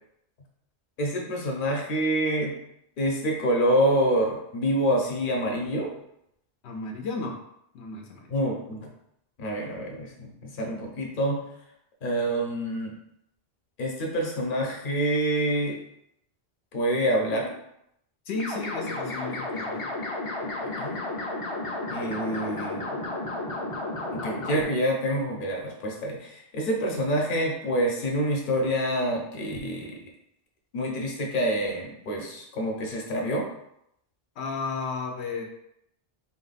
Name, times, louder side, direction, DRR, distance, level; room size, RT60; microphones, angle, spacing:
voice 1, 1.0-2.5 3.0-5.9 8.3-8.9 9.4-11.4 12.0-12.9 13.8-15.8 16.7-17.6 20.6-20.9 21.9-23.0 24.1-30.0 30.7-33.5, right 1 dB, 55° left, 0 dB, 1.0 m, -27 dB
voice 2, 6.6-7.4 7.7-8.3 18.2-19.9 34.4-35.4, left 4 dB, 90° left, 1 dB, 0.9 m, -33 dB
sound 1, 18.3-24.6, left 2 dB, 35° left, 0.6 m, -32 dB
4.1 x 2.3 x 4.0 m, 0.77 s
omnidirectional pair, 1.1 m